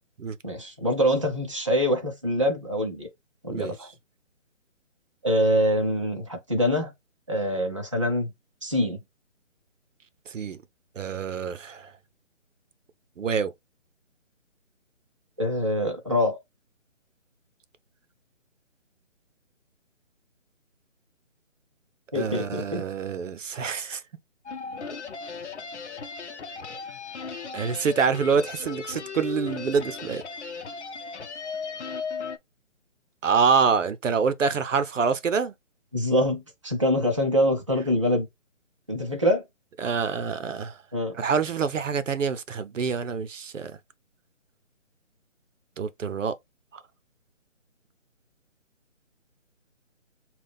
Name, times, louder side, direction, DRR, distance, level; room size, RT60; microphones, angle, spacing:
voice 1, 0.4-3.1 3.4-3.9 5.2-6.9 7.3-8.3 8.6-9.0 15.4-16.4 22.1-22.8 35.9-38.3 38.9-39.4 40.9-41.1, equal, 25° right, 0.6 m, -24 dB
voice 2, 10.3-10.6 11.0-11.9 13.2-13.5 22.1-24.0 27.5-30.2 33.2-35.5 39.8-40.8 41.1-43.7 45.8-46.3 46.7-46.8, right 5 dB, 80° right, 0.7 m, -26 dB
sound 1, 24.5-32.4, left 5 dB, 65° left, 0.8 m, -36 dB
5.6 x 2.4 x 3.4 m
hypercardioid pair, 180°, 38 cm